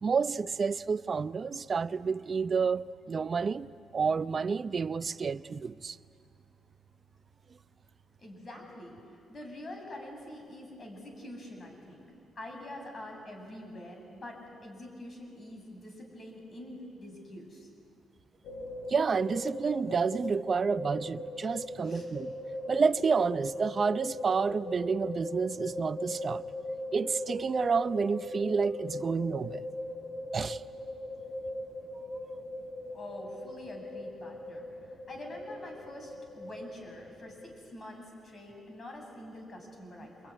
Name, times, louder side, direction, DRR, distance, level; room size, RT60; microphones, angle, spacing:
voice 1, 0.0-3.7 3.9-6.0 18.9-22.3 22.7-26.4 26.9-29.6 30.3-30.6, right 5 dB, 40° right, 0.6 m, -29 dB
voice 2, 8.2-9.0 9.3-12.0 12.4-17.7 21.8-22.1 32.9-40.3, left 1 dB, 40° left, 7.6 m, -45 dB
sound 1, 18.4-37.5, left 1 dB, 75° left, 5.5 m, -40 dB
27.0 x 22.5 x 9.8 m
cardioid pair, 90°, 0 cm